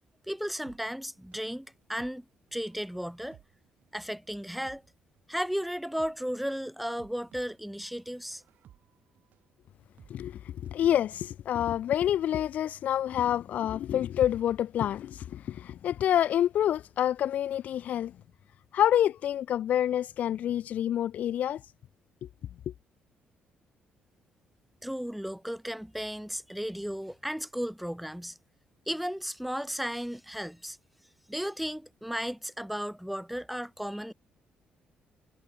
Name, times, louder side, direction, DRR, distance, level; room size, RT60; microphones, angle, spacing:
voice 1, 0.3-2.2 2.5-3.4 3.9-4.8 5.3-8.4 24.8-28.4 28.9-30.8 31.3-34.1, equal, ahead, 0.7 m, -34 dB
sound 1, 0.6-10.9 11.2-11.3, right 11 dB, 65° right, 4.6 m, -60 dB
voice 2, 10.1-18.1 18.7-21.6, left 11 dB, 60° left, 0.4 m, -27 dB
cardioid pair, 140°, 3 cm